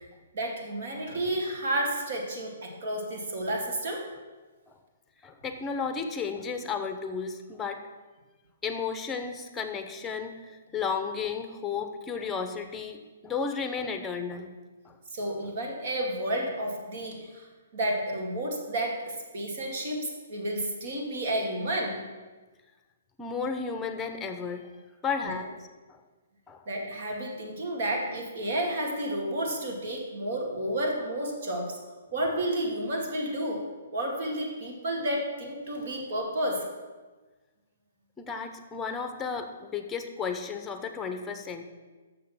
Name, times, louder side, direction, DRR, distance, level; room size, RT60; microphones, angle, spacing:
voice 1, 0.3-4.1 15.1-17.5 17.7-22.0 25.2-25.3 26.7-31.8 32.1-36.7, right 1 dB, 55° right, 1 dB, 2.3 m, -31 dB
voice 2, 5.2-7.8 8.6-10.4 10.7-14.5 14.8-15.0 23.2-24.7 25.0-25.5 25.9-26.0 26.5-26.6 38.2-41.6, left 5 dB, 10° left, 7 dB, 0.9 m, -33 dB
6.7 x 6.5 x 7.2 m, 1.3 s
hypercardioid pair, 145°, 0 cm